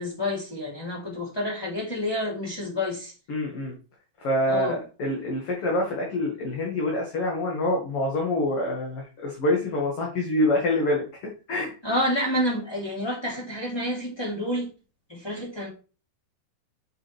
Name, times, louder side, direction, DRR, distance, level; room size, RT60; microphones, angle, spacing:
voice 1, 0.0-3.1 4.5-4.8 11.8-14.7 15.1-15.7, left 1 dB, 5° left, 2.7 m, -29 dB
voice 2, 3.3-3.7 4.2-11.0 11.5-11.7, left 1 dB, 45° left, 2.3 m, -26 dB
8.3 x 7.6 x 3.4 m
omnidirectional pair, 4.6 m